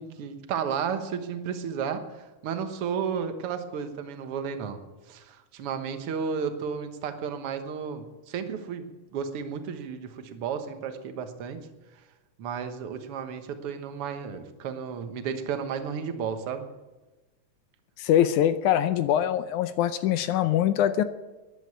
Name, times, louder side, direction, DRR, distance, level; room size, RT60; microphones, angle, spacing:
voice 1, 0.0-4.8 5.1-11.6 12.4-16.7, right 7 dB, 55° right, 8 dB, 1.8 m, -33 dB
voice 2, 18.0-21.0, left 11 dB, 75° left, 12 dB, 1.9 m, -23 dB
13.0 x 11.0 x 8.4 m, 1.1 s
omnidirectional pair, 3.8 m